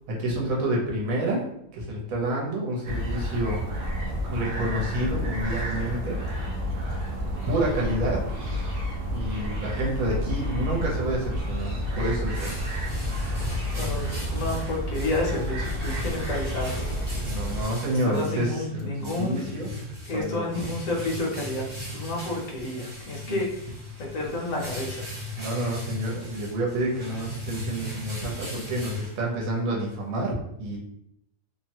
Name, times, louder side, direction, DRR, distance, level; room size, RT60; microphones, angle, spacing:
voice 1, 0.1-1.5 1.7-3.6 4.2-6.2 7.5-8.3 9.0-12.6 17.2-19.7 20.1-20.5 23.3-23.4 25.4-30.8, right 1 dB, 65° right, -3 dB, 1.2 m, -29 dB
sound 1, 2.8-17.6, equal, 80° right, 0.5 m, -30 dB
sound 2, 11.9-29.6, left 1 dB, 30° right, 0.8 m, -38 dB
voice 2, 13.3-17.0 17.5-17.6 18.0-19.4 20.1-23.5 24.0-25.0, left 2 dB, 65° left, -1 dB, 1.1 m, -30 dB
3.0 x 2.2 x 2.8 m, 0.76 s
omnidirectional pair, 1.7 m